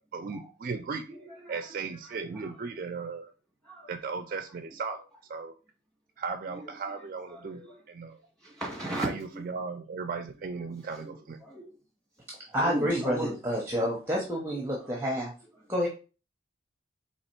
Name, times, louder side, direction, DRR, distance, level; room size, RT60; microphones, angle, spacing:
voice 1, 0.0-1.0 1.5-3.3 3.9-5.0 5.3-5.5 6.2-7.6 7.9-8.2 9.0-11.4, right 4 dB, 45° right, 7 dB, 0.4 m, -36 dB
voice 2, 1.1-1.6 2.3-2.5 3.6-3.9 6.6-6.7 7.3-7.8 8.4-9.1 9.3-9.4 11.1-11.7 12.6-13.4 13.8-13.9, right 1 dB, 5° left, -3 dB, 1.6 m, -36 dB
voice 3, 12.5-15.3 15.7-15.9, equal, 10° right, -1 dB, 0.7 m, -29 dB
4.1 x 2.9 x 4.4 m, 0.35 s
head